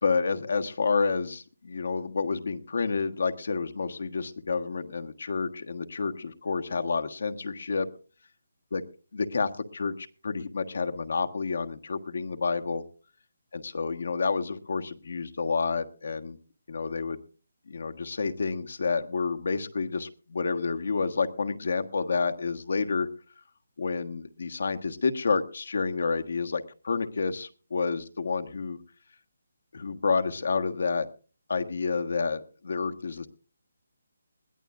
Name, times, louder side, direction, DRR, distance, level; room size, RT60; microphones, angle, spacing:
voice 1, 0.0-7.9 8.7-8.8 9.1-12.8 13.5-16.4 16.7-17.2 17.7-23.1 23.8-28.8 29.7-31.1 31.5-33.3, left 4 dB, 60° left, 7 dB, 1.4 m, -29 dB
21.0 x 14.5 x 2.5 m, 0.37 s
hypercardioid pair, 175°, 0 cm